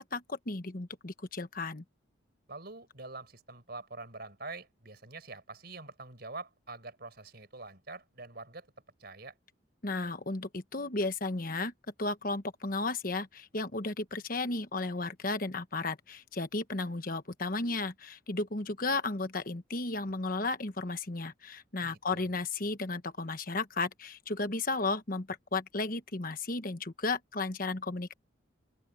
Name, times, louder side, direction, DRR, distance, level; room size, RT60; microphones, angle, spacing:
voice 1, 0.0-1.8 9.8-11.7 12.0-28.1, left 3 dB, 45° left, 1.3 m, -34 dB
voice 2, 2.5-8.7 9.0-9.3 21.8-22.3, right 3 dB, 55° right, 4.9 m, -45 dB
open air
head